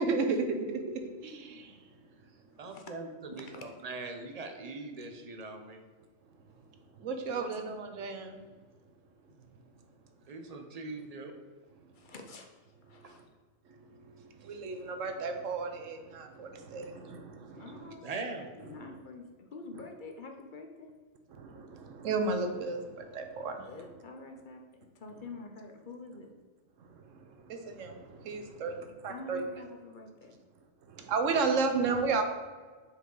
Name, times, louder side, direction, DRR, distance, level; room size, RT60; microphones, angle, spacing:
voice 1, 0.0-1.9 7.0-8.4 12.9-13.2 13.7-17.9 18.7-19.0 21.3-23.7 26.8-28.7 29.0-29.4 30.9-32.2, right 4 dB, 75° right, 6 dB, 1.1 m, -34 dB
voice 2, 2.6-5.8 10.3-11.3 16.8-16.9 18.0-18.5, right 3 dB, 45° right, 4 dB, 0.5 m, -41 dB
voice 3, 7.1-7.5 11.9-13.2 17.5-18.3 18.5-20.9 23.4-24.6 24.9-26.3 29.1-30.4, left 3 dB, 50° left, 3 dB, 0.6 m, -47 dB
5.5 x 4.7 x 3.8 m, 1.4 s
omnidirectional pair, 1.3 m